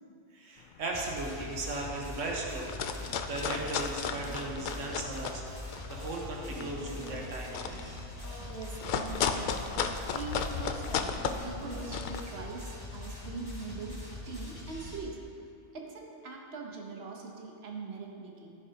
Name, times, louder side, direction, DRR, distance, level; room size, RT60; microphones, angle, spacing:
voice 1, 0.3-5.6 5.9-7.6, right 2 dB, 85° right, -1 dB, 1.5 m, -37 dB
sound 1, 0.7-1.0 1.5-2.2 2.5-5.4 5.7-12.2, left 6 dB, 60° left, 0.5 m, -34 dB
sound 2, 0.9-15.0, left 2 dB, 20° left, 1.7 m, -43 dB
sound 3, 3.0-3.3 3.6-3.9 4.1-5.0 5.3-8.5 8.8-9.7 10.0-12.2, left 1 dB, 80° left, 2.8 m, -49 dB
voice 2, 8.4-15.2 15.7-18.6, right 4 dB, 60° right, 0 dB, 1.3 m, -42 dB
15.0 x 7.3 x 2.9 m, 2.5 s
omnidirectional pair, 1.3 m